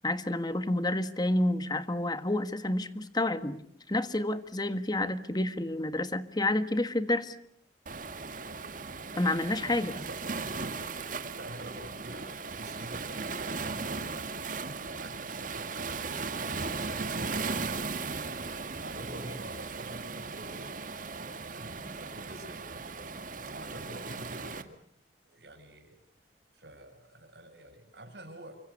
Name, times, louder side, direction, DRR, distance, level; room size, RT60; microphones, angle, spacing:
voice 1, 0.0-7.3 9.2-10.0, left 1 dB, 25° left, 11 dB, 1.6 m, -29 dB
Waves surf, 7.9-24.6, right 4 dB, 50° right, 2.0 m, -37 dB
voice 2, 11.2-14.3 14.8-18.1 18.8-22.6 23.5-24.7 25.3-26.0 26.5-28.6, right 1 dB, 75° right, 3 dB, 7.7 m, -47 dB
29.0 x 25.0 x 6.7 m, 0.66 s
head